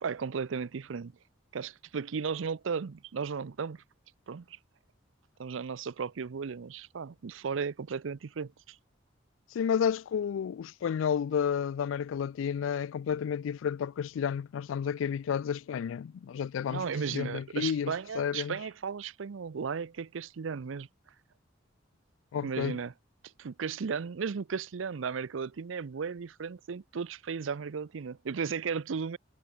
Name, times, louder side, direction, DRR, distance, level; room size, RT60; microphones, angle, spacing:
voice 1, 0.0-1.1 1.5-3.8 4.3-4.6 5.4-8.8 16.7-20.9 22.4-22.9 23.4-29.2, right 6 dB, 80° right, 0.5 m, -35 dB
voice 2, 9.5-18.5 22.3-22.8, left 7 dB, 80° left, 0.3 m, -31 dB
head